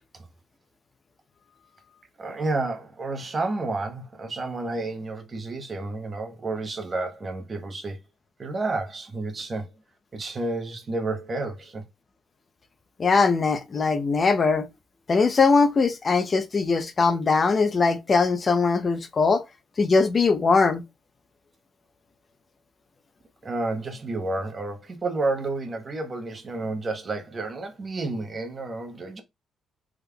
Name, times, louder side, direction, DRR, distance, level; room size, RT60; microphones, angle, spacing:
voice 1, 2.2-8.0 8.4-9.7 10.1-11.8 23.4-29.2, right 2 dB, 35° right, 1.0 m, -30 dB
voice 2, 13.0-14.7 15.1-19.4 19.8-20.8, left 4 dB, 35° left, 0.5 m, -21 dB
3.6 x 3.2 x 2.2 m
cardioid pair, 90°, 0 cm